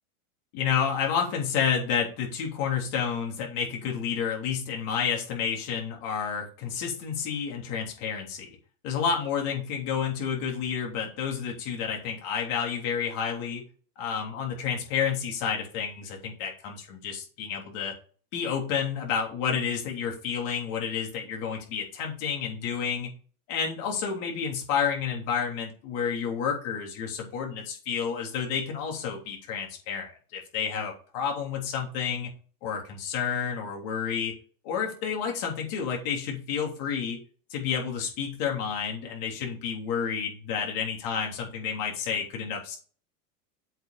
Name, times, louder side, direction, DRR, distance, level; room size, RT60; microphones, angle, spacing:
voice 1, 0.5-8.6 8.8-13.6 14.0-17.9 18.3-23.1 23.5-32.3 32.6-34.3 34.6-37.2 37.5-42.8, left 7 dB, 50° left, 0 dB, 3.4 m, -30 dB
7.9 x 5.0 x 4.9 m, 0.40 s
supercardioid pair, 140°, 46 cm